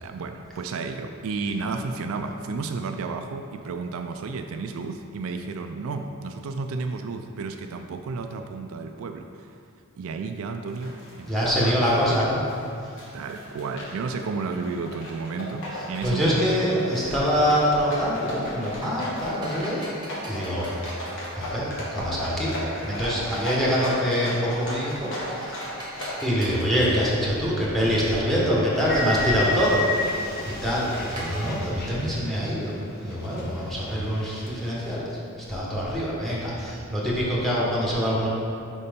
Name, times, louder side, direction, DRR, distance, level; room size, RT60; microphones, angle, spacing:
voice 1, 0.0-9.5 10.0-11.7 12.1-12.3 13.1-16.4, right 4 dB, 70° right, 5 dB, 0.3 m, -32 dB
sound 1, 10.7-26.2, left 1 dB, 60° left, 1.3 m, -36 dB
voice 2, 11.2-12.4 16.0-19.8 20.2-20.7 21.4-25.6 26.2-35.1 35.5-38.3, equal, ahead, -6 dB, 1.2 m, -25 dB
sound 2, 18.7-31.4, right 1 dB, 20° right, 1.1 m, -43 dB
sound 3, 28.9-32.8 33.1-34.9, left 2 dB, 45° left, 0.8 m, -32 dB
5.2 x 4.2 x 5.2 m, 2.4 s
head